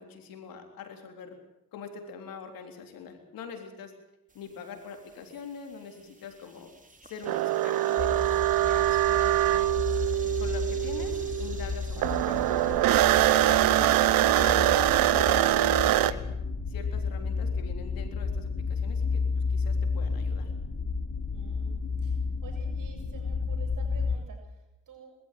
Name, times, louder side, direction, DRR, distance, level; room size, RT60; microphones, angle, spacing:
voice 1, 0.0-1.4 1.7-3.9 4.3-6.7 7.0-8.2 8.6-9.7 10.2-12.8 13.2-16.3 16.7-19.2 19.5-20.5, left 6 dB, 90° left, 5 dB, 3.7 m, -43 dB
sound 1, 4.3-15.3, right 2 dB, 25° right, 3.5 m, -51 dB
sound 2, 7.3-11.7 12.0-16.1, right 14 dB, 90° right, 0.9 m, -24 dB
sound 3, 8.0-24.2, left 4 dB, 55° left, 4.4 m, -32 dB
voice 2, 21.3-25.1, right 6 dB, 70° right, 3 dB, 7.1 m, -51 dB
21.5 x 14.0 x 9.2 m, 0.87 s
cardioid pair, 65°, 34 cm